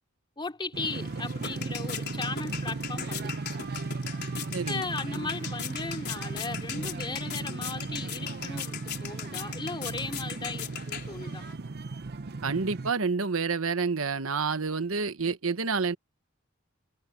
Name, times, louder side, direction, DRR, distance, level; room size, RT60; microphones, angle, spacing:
voice 1, 0.4-3.6 4.3-11.5, left 3 dB, 25° left, 3.2 m, -37 dB
sound 1, 0.7-12.9, right 3 dB, 50° right, 0.7 m, -36 dB
sound 2, 0.8-11.5, left 9 dB, 55° left, 4.3 m, -40 dB
voice 2, 4.5-4.8 12.4-16.0, right 4 dB, 90° right, 1.1 m, -28 dB
head